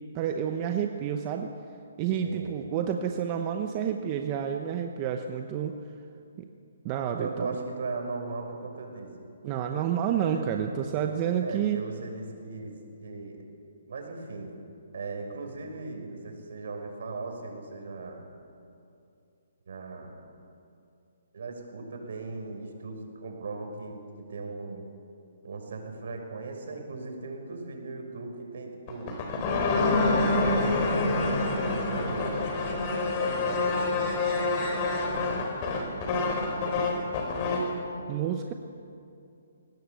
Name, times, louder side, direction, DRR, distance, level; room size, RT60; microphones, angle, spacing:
voice 1, 0.1-1.5 2.0-5.8 6.4-6.5 6.8-7.5 9.4-11.8 38.1-38.5, right 8 dB, 25° right, 5 dB, 1.0 m, -29 dB
voice 2, 2.2-2.5 7.2-9.1 10.3-10.7 11.4-12.7 13.0-13.4 13.9-14.5 14.9-18.3 19.7-20.1 21.3-24.8 25.4-29.2 30.1-32.5 33.2-34.1 35.1-35.5 36.5-37.2, right 3 dB, 65° right, 3 dB, 6.1 m, -38 dB
sound 1, 28.9-37.7, left 3 dB, 30° left, 3.9 m, -27 dB
22.0 x 19.0 x 8.4 m, 2.6 s
hypercardioid pair, 160°, 0 cm